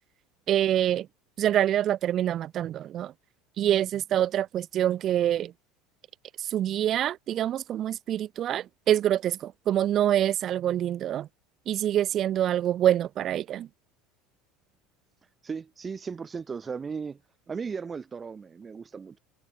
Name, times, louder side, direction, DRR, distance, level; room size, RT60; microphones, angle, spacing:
voice 1, 0.5-1.1 1.4-3.1 3.6-5.5 6.5-11.3 11.7-13.7, right 11 dB, 45° right, 1.0 m, -25 dB
voice 2, 15.4-17.2 17.5-19.2, right 5 dB, 25° right, 4.1 m, -36 dB
hypercardioid pair, 70°, 0 cm